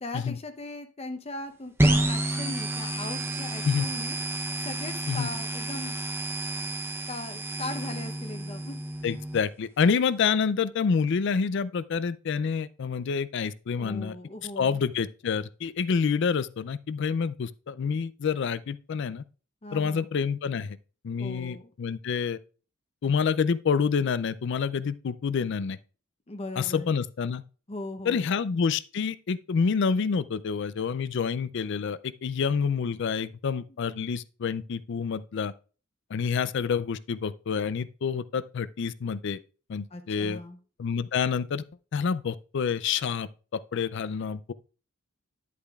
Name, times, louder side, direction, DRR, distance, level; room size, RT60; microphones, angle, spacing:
voice 1, 0.0-1.7 2.1-4.2 4.6-6.0 7.1-8.8 13.8-14.8 19.6-20.1 21.2-21.7 26.3-26.9 27.7-28.3 39.9-40.6, left 2 dB, 30° left, 0.7 m, -39 dB
sound 1, 1.8-9.4, right 1 dB, 10° right, 0.7 m, -29 dB
voice 2, 9.0-14.2 14.6-19.2 19.7-20.8 21.0-22.4 23.0-25.8 26.6-27.4 28.0-35.5 36.1-39.4 39.7-40.4 40.8-41.6 41.9-44.5, left 6 dB, 60° left, 0.4 m, -28 dB
10.0 x 8.3 x 2.4 m
head